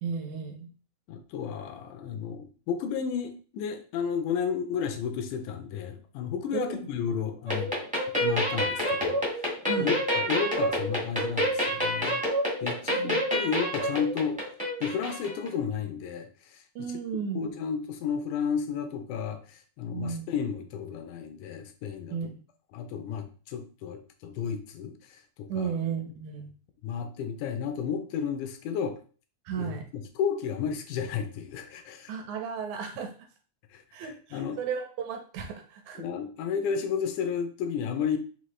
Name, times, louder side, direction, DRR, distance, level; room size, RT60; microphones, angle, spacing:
voice 1, 0.0-0.7 6.5-6.8 9.7-10.0 13.0-13.2 16.8-17.5 19.9-20.3 22.1-22.4 25.5-26.5 29.5-29.8 32.1-33.1 33.9-36.0, right 6 dB, 80° right, 4 dB, 2.1 m, -34 dB
voice 2, 1.1-7.7 8.2-12.2 12.6-14.4 14.8-16.6 17.4-22.2 22.7-24.9 25.4-25.7 26.8-29.0 29.6-29.8 30.2-32.1 33.7-34.6 36.0-38.2, left 7 dB, 80° left, 7 dB, 2.1 m, -32 dB
sound 1, 7.5-15.6, equal, 10° right, 0.5 m, -28 dB
5.5 x 2.8 x 3.1 m, 0.38 s
omnidirectional pair, 3.5 m